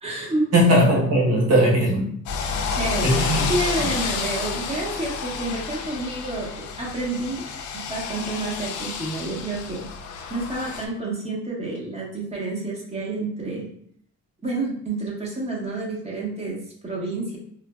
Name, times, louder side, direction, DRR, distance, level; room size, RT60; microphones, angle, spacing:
voice 1, 0.0-0.5 2.7-3.1 3.5-7.4 7.9-9.8 10.3-13.7 14.4-16.6 16.8-17.4, right 2 dB, 20° right, -4 dB, 1.3 m, -29 dB
voice 2, 0.5-2.1 3.0-3.5, equal, 55° right, -3 dB, 1.1 m, -18 dB
sound 1, 2.3-10.9, left 5 dB, 75° left, 0.5 m, -30 dB
4.4 x 2.1 x 2.4 m, 0.65 s
cardioid pair, 90°, 30 cm